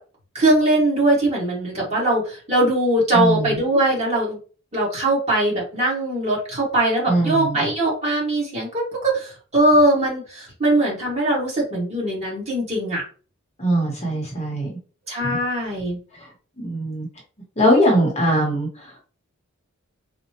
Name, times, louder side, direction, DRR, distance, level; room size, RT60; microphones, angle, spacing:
voice 1, 0.3-4.4 4.7-13.0 15.1-16.0, right 1 dB, 30° right, -5 dB, 1.8 m, -21 dB
voice 2, 3.1-3.6 7.1-7.6 13.6-14.7 15.2-15.4 16.6-17.1 17.6-19.0, equal, 30° left, -2 dB, 1.0 m, -21 dB
4.1 x 2.3 x 2.9 m, 0.38 s
head